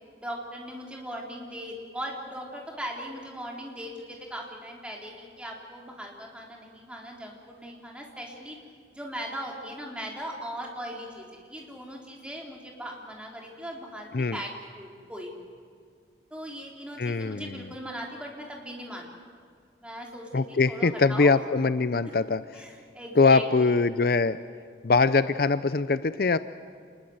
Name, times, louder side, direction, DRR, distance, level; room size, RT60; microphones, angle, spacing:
voice 1, 0.2-8.6 8.9-15.3 16.3-19.1 19.8-21.4 22.0-23.8, equal, 5° right, 0 dB, 3.8 m, -39 dB
voice 2, 17.0-17.6 20.3-22.4 23.2-24.4 24.8-26.4, left 4 dB, 55° left, 14 dB, 0.6 m, -22 dB
27.5 x 21.0 x 8.0 m, 2.3 s
head